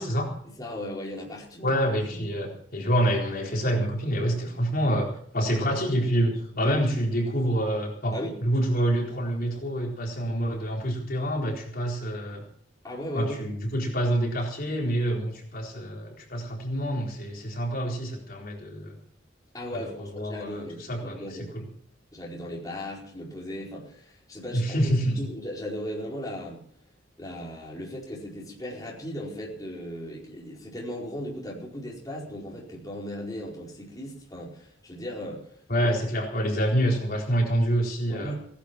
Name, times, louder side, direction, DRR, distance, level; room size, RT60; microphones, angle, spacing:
voice 1, 0.4-1.8 2.1-2.3 5.6-5.8 8.1-8.3 12.8-13.4 19.5-21.5 22.1-26.6 27.2-35.5 38.1-38.4, left 1 dB, 20° left, -3 dB, 4.7 m, -37 dB
voice 2, 1.6-8.2 8.4-12.4 13.1-19.0 19.7-21.1 21.5-21.6 24.5-25.2 35.7-38.4, equal, 50° left, -1 dB, 4.1 m, -27 dB
18.5 x 11.5 x 6.0 m, 0.63 s
head